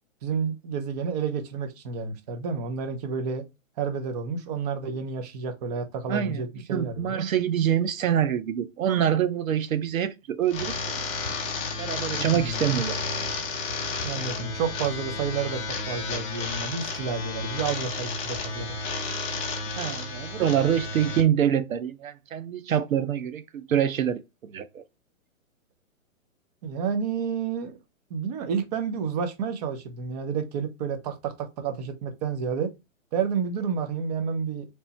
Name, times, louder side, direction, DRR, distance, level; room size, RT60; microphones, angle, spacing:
voice 1, 0.2-3.4 3.8-7.2 12.3-12.6 14.0-18.8 26.6-27.8 28.1-32.7 33.1-34.7, right 6 dB, 30° right, 0.7 m, -30 dB
voice 2, 6.1-11.0 11.8-13.0 19.8-24.8, right 9 dB, 85° right, 0.7 m, -26 dB
sound 1, 10.5-21.2, left 3 dB, 15° left, 0.6 m, -32 dB
3.3 x 2.9 x 4.2 m
hypercardioid pair, 145°, 40 cm